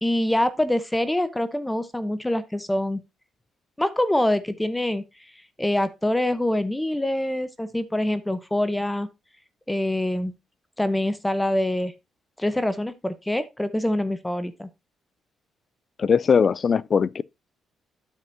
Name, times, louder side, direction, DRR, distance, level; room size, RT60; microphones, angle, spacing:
voice 1, 0.0-3.0 3.8-5.0 5.6-9.1 9.7-10.3 10.8-11.9 12.4-14.7, left 1 dB, 10° left, 0.8 m, -25 dB
voice 2, 16.0-17.2, left 6 dB, 45° left, 0.4 m, -20 dB
9.5 x 7.3 x 2.7 m
cardioid pair, 90°, 0 cm